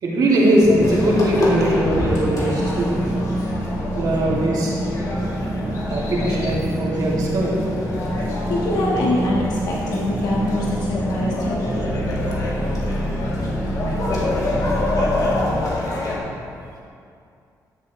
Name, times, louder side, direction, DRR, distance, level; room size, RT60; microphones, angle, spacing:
voice 1, 0.0-2.9 4.0-4.7 5.9-7.6, right 1 dB, 65° right, -4 dB, 2.3 m, -20 dB
sound 1, 0.6-15.7, right 1 dB, 20° right, 0.8 m, -27 dB
sound 2, 0.8-16.2, left 1 dB, 55° left, 2.1 m, -28 dB
voice 2, 8.5-11.7, left 1 dB, 80° left, -4 dB, 1.4 m, -24 dB
12.5 x 7.3 x 3.2 m, 2.4 s
cardioid pair, 90°, 7 cm